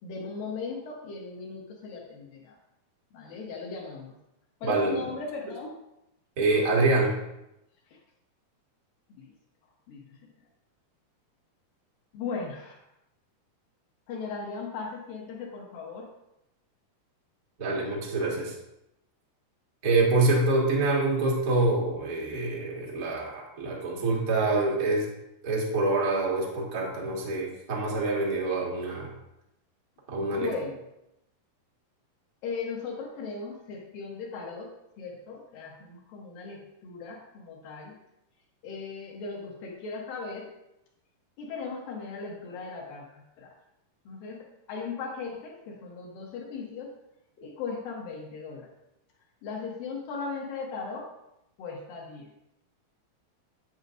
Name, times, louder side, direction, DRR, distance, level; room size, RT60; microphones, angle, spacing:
voice 1, 0.0-2.6 3.1-4.2 4.6-5.8 7.9-8.0 9.9-10.2 12.1-12.8 14.1-16.1 30.2-30.8 32.4-38.0 38.6-40.5 41.4-43.5 44.1-46.9 47.4-48.7 49.4-51.1 51.6-52.3, left 4 dB, 70° left, -2 dB, 2.4 m, -37 dB
voice 2, 4.6-5.0 6.4-7.2 17.6-18.5 19.8-25.1 25.4-29.1 30.1-30.5, right 2 dB, 85° right, -4 dB, 0.7 m, -26 dB
9.1 x 7.8 x 2.6 m, 0.86 s
omnidirectional pair, 4.7 m